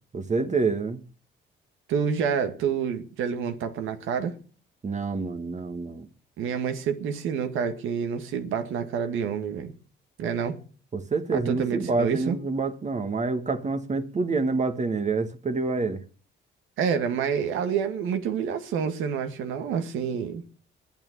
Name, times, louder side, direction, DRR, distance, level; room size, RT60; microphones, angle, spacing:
voice 1, 0.1-1.0 4.8-6.1 10.9-16.0, right 4 dB, 35° right, 1.6 m, -27 dB
voice 2, 1.9-4.3 6.4-9.7 10.2-10.6 11.3-12.4 16.8-20.4, right 7 dB, 85° right, 1.8 m, -28 dB
9.3 x 9.0 x 9.1 m
cardioid pair, 90°, 20 cm